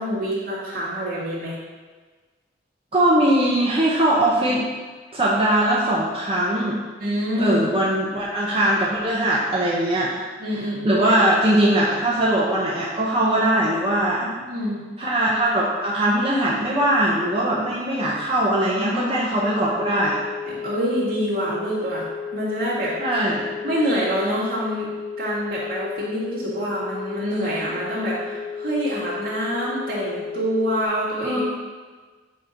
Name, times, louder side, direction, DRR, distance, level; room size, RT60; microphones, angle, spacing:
voice 1, 0.0-1.6 7.0-7.6 10.4-11.1 14.2-14.8 18.7-19.5 20.5-22.9 23.6-24.9 25.2-31.4, equal, 50° right, -9 dB, 1.9 m, -26 dB
voice 2, 2.9-4.7 5.1-6.8 7.4-10.1 10.8-14.2 15.0-20.2 23.0-23.5 31.2-31.4, right 1 dB, 30° right, -6 dB, 0.8 m, -21 dB
sound 1, 19.7-30.8, left 7 dB, 5° left, 0.4 m, -33 dB
7.4 x 2.9 x 5.1 m, 1.4 s
head